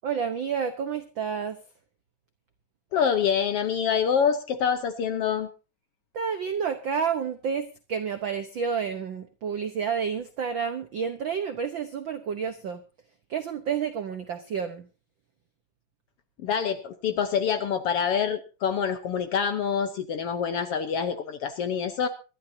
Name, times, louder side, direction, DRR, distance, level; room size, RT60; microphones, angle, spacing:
voice 1, 0.0-1.6 6.1-12.8 13.3-14.9, right 7 dB, 70° right, 8 dB, 1.1 m, -30 dB
voice 2, 2.9-5.5 16.4-22.1, left 7 dB, 65° left, 9 dB, 1.5 m, -26 dB
25.0 x 12.0 x 2.7 m, 0.33 s
omnidirectional pair, 3.5 m